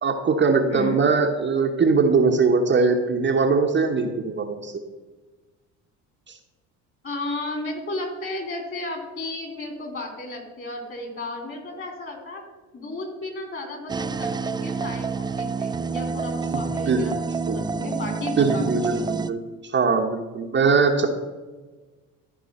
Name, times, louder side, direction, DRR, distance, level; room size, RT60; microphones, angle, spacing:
voice 1, 0.0-4.7 6.3-6.4 16.5-16.6 16.9-17.1 17.5-17.6 18.4-21.1, right 4 dB, 30° right, 3 dB, 1.0 m, -21 dB
voice 2, 0.7-1.0 7.0-12.4 12.7-18.8, left 2 dB, 35° left, 3 dB, 3.1 m, -34 dB
sound 1, 13.9-19.3, right 4 dB, 15° right, 0.3 m, -28 dB
14.0 x 4.8 x 4.3 m, 1.3 s
supercardioid pair, 85°, 34 cm